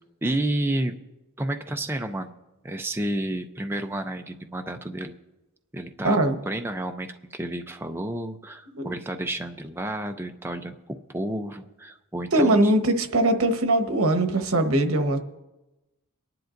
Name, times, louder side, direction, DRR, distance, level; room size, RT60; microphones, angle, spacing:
voice 1, 0.2-1.0 1.4-2.3 2.6-5.1 5.7-6.2 6.5-12.7, right 1 dB, 10° right, 5 dB, 0.5 m, -31 dB
voice 2, 6.0-6.4 8.7-8.9 12.3-15.2, right 1 dB, 80° right, 6 dB, 1.1 m, -21 dB
23.5 x 10.5 x 2.6 m, 1.0 s
head